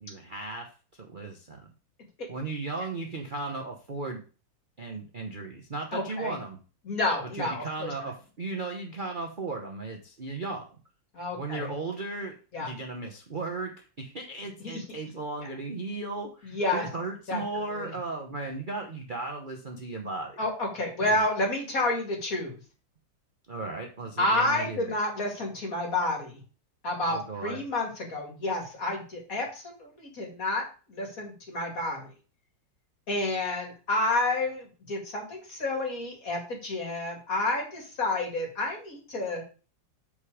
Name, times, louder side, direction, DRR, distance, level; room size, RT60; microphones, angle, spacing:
voice 1, 0.0-0.7 1.0-1.6 2.3-4.2 4.8-6.6 7.3-10.7 11.3-20.4 21.1-21.3 23.5-24.9 27.1-27.6, right 3 dB, 35° right, 1 dB, 0.8 m, -36 dB
voice 2, 5.9-6.4 6.9-7.9 11.1-11.7 12.5-12.7 14.6-14.8 16.4-16.9 17.3-17.4 17.8-18.0 20.4-22.5 24.2-26.4 26.8-30.6 30.9-32.1 33.1-39.4, left 2 dB, 50° left, 1 dB, 2.6 m, -30 dB
7.4 x 5.2 x 4.9 m, 0.36 s
omnidirectional pair, 2.0 m